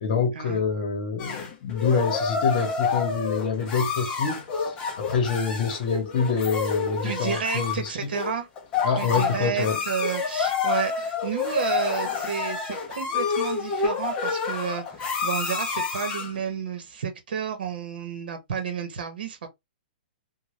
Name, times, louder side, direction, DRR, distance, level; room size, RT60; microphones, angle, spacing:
voice 1, 0.0-7.9 8.8-9.8, left 5 dB, 45° left, 1.0 m, -26 dB
sound 1, 1.2-16.4, left 5 dB, 20° left, 0.5 m, -28 dB
voice 2, 7.0-8.5 8.9-19.5, right 7 dB, 70° right, 0.9 m, -31 dB
2.7 x 2.2 x 3.1 m
hypercardioid pair, 165°, 5 cm